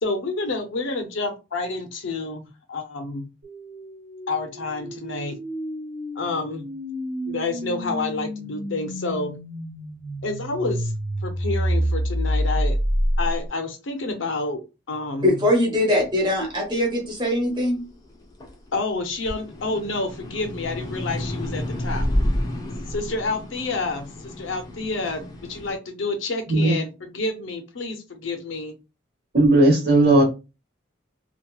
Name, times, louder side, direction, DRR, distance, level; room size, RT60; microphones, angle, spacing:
voice 1, 0.0-3.3 4.3-5.4 6.2-6.7 7.3-9.3 10.2-10.9 11.2-12.8 13.2-14.6 14.9-15.4 18.7-22.1 22.9-28.7, left 3 dB, 85° left, 6 dB, 0.6 m, -29 dB
sound 1, 3.4-13.5, equal, 85° right, 1.1 m, -28 dB
voice 2, 15.2-17.8, left 1 dB, 25° right, 0 dB, 0.8 m, -22 dB
sound 2, 16.1-18.7 19.1-25.8, left 1 dB, 20° left, 0.4 m, -30 dB
voice 3, 29.3-30.2, right 2 dB, 55° right, 1 dB, 1.0 m, -16 dB
2.8 x 2.2 x 2.2 m, 0.28 s
head